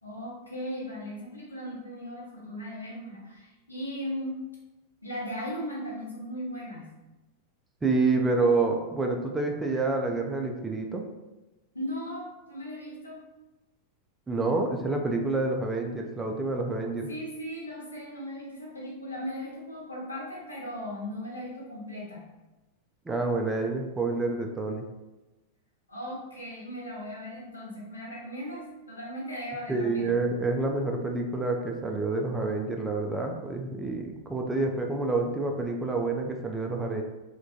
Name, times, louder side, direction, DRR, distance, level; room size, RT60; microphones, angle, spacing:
voice 1, 0.0-4.4 5.0-6.9 11.7-13.2 17.1-22.2 25.9-30.1, equal, 80° left, -5 dB, 0.7 m, -37 dB
voice 2, 7.8-11.0 14.3-17.1 23.1-24.9 29.7-37.0, right 3 dB, 10° right, 2 dB, 0.3 m, -28 dB
2.2 x 2.1 x 2.6 m, 1.1 s
figure-of-eight pair, 90°, 0 cm